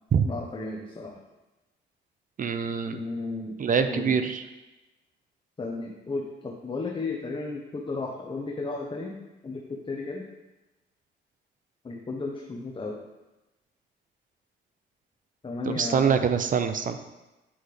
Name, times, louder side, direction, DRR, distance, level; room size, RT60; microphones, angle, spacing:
voice 1, 0.2-1.1 2.9-3.5 3.9-4.2 5.6-9.2 9.4-10.2 11.8-13.0 15.4-16.3, left 3 dB, 25° left, 0 dB, 0.9 m, -34 dB
voice 2, 2.4-3.0 3.6-4.4 15.7-17.0, right 6 dB, 40° right, 9 dB, 0.6 m, -24 dB
8.6 x 5.5 x 3.4 m, 1.0 s
cardioid pair, 90°, 20 cm